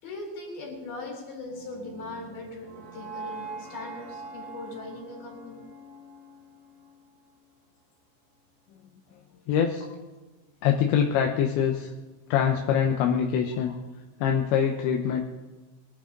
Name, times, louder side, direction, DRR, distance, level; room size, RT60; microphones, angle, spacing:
voice 1, 0.0-5.6 9.1-9.4 13.7-13.8, left 2 dB, 50° left, 0 dB, 5.4 m, -40 dB
sound 1, 1.4-7.5, right 3 dB, 50° right, 2.3 m, -43 dB
voice 2, 9.5-9.9 10.6-11.9 12.3-13.7 14.2-15.2, left 8 dB, 75° left, 2 dB, 2.9 m, -24 dB
22.0 x 12.5 x 3.9 m, 1.2 s
omnidirectional pair, 5.8 m